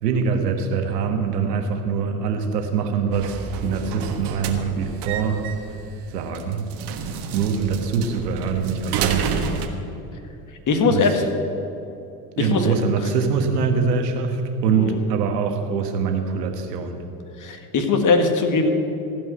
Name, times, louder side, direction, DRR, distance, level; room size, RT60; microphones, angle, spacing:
voice 1, 0.0-5.5 6.1-6.7 7.3-9.7 10.9-11.1 12.4-17.0, right 5 dB, 85° right, 4 dB, 1.6 m, -24 dB
sound 1, 3.1-9.7, right 6 dB, 55° right, 1.6 m, -30 dB
voice 2, 10.7-11.2 12.4-12.7 14.7-15.0 17.4-18.7, left 4 dB, 40° left, 5 dB, 1.8 m, -20 dB
16.0 x 5.4 x 9.6 m, 3.0 s
hypercardioid pair, 80°, 47 cm